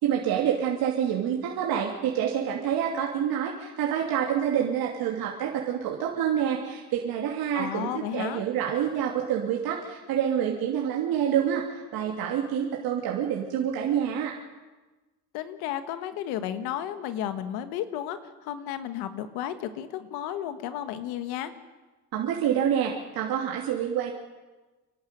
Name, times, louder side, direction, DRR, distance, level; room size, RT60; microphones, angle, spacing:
voice 1, 0.0-14.3 22.1-24.1, right 9 dB, 70° right, -1 dB, 3.0 m, -27 dB
voice 2, 7.5-8.4 15.3-21.5, left 10 dB, 85° left, 10 dB, 1.5 m, -33 dB
27.5 x 12.0 x 9.2 m, 1.2 s
supercardioid pair, 85°, 37 cm